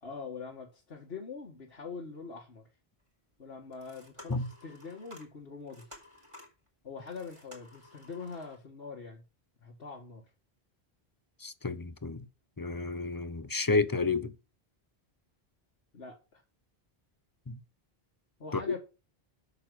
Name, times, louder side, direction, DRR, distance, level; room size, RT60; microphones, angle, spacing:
voice 1, 0.0-2.6 3.4-5.9 6.8-9.2 9.6-10.2 15.9-16.4 18.4-18.8, left 5 dB, 80° left, 1.9 m, -43 dB
sound 1, 3.0-3.1 3.6-8.6, left 1 dB, 30° right, 3.7 m, -54 dB
voice 2, 11.4-12.2 12.6-14.3 17.5-17.6 18.5-18.7, left 3 dB, 25° left, 0.7 m, -31 dB
8.7 x 6.7 x 7.8 m
omnidirectional pair, 1.0 m